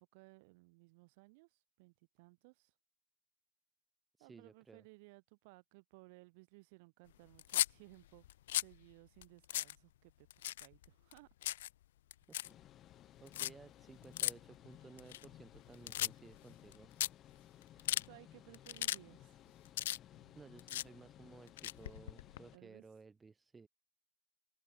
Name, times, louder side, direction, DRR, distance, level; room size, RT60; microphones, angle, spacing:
voice 1, 0.0-2.7 4.2-8.3 8.5-10.3 10.6-11.3 17.7-19.4 22.5-22.8, right 27 dB, 40° right, 3.6 m, -60 dB
voice 2, 4.2-4.9 12.3-12.4 13.2-16.9 20.3-23.7, right 4 dB, 10° right, 0.9 m, -57 dB
sound 1, 7.3-7.7 8.2-8.7 9.2-9.3 9.5-9.8 10.3-10.9 11.1-11.7 12.1-12.5 13.3-13.5 14.2-14.3 15.0-15.6 15.9-16.4 16.7-16.8 17.0-17.1 17.6-18.1 18.5-19.0 19.2-20.3 20.6-20.9 21.5-22.4, left 14 dB, 55° left, 0.4 m, -36 dB
Computer Noises, 12.4-22.6, left 12 dB, 25° left, 4.3 m, -59 dB
open air
hypercardioid pair, 135°, 0 cm